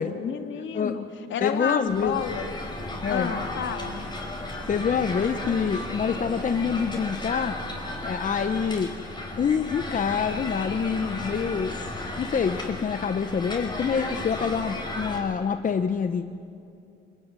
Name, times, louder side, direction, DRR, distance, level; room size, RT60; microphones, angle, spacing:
voice 1, 0.0-2.5 3.1-4.1, left 7 dB, 75° left, 7 dB, 2.3 m, -30 dB
voice 2, 1.4-2.2 3.0-3.3 4.7-7.6 8.0-8.9 9.4-11.8 12.2-16.3, left 6 dB, 40° left, 9 dB, 1.0 m, -26 dB
sound 1, 1.9-15.2, left 1 dB, 20° left, 5.3 m, -34 dB
25.0 x 22.5 x 9.8 m, 2.5 s
cardioid pair, 90°, 20 cm